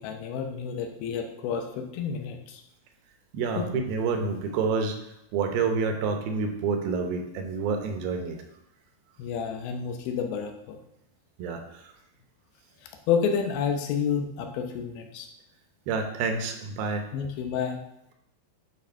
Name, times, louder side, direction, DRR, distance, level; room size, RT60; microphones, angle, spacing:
voice 1, 0.0-2.6 3.6-3.8 9.2-10.8 13.1-15.3 17.1-17.8, left 6 dB, 85° left, 4 dB, 2.8 m, -30 dB
voice 2, 3.3-5.0 5.3-8.4 11.4-11.8 15.9-17.0, right 4 dB, 80° right, 5 dB, 2.6 m, -28 dB
11.0 x 4.3 x 4.4 m, 0.84 s
omnidirectional pair, 4.3 m